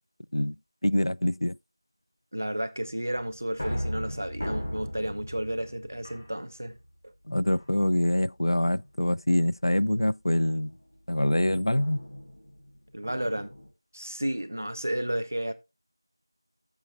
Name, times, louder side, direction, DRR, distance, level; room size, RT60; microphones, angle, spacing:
voice 1, 0.8-1.6 7.3-10.7 11.1-12.0, left 1 dB, 80° left, 0.4 m, -25 dB
voice 2, 2.3-6.8 7.0-7.1 12.9-13.5 13.9-15.5, right 1 dB, 30° right, 0.7 m, -32 dB
sound 1, 3.1-6.9 7.4-8.0 8.5-8.9 10.3-13.7, equal, 15° left, 0.9 m, -38 dB
17.5 x 7.1 x 2.2 m
figure-of-eight pair, 180°, 2 cm